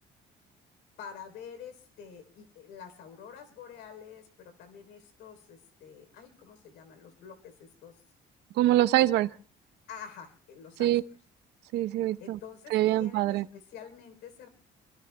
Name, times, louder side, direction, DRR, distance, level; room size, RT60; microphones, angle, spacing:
voice 1, 1.0-8.0 9.9-10.9 12.2-14.5, left 7 dB, 90° left, 3.5 m, -47 dB
voice 2, 8.5-9.4 10.8-11.0 11.7-12.4 12.7-13.5, right 15 dB, 85° right, 0.8 m, -24 dB
27.0 x 23.0 x 2.2 m
cardioid pair, 110°, 17 cm